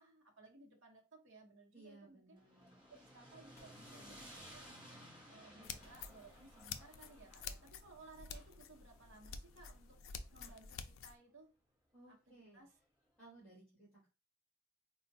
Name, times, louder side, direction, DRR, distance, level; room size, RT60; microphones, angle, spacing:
voice 1, 0.0-2.4 2.9-5.0 5.3-11.5 12.1-12.7, right 3 dB, 55° right, 0 dB, 0.8 m, -60 dB
voice 2, 1.7-2.8 11.9-12.8 13.2-14.1, right 2 dB, 5° left, -8 dB, 1.7 m, -60 dB
sound 1, 1.9-2.3 2.5-2.9 3.2-4.8 5.8-6.1 7.3-7.4 8.3-8.7 10.4-10.7, left 2 dB, 30° left, 0.7 m, -68 dB
sound 2, 2.4-10.6, equal, 20° right, 1.0 m, -58 dB
sound 3, 5.6-11.1, left 6 dB, 60° left, 0.3 m, -50 dB
4.2 x 2.1 x 2.6 m, 0.30 s
head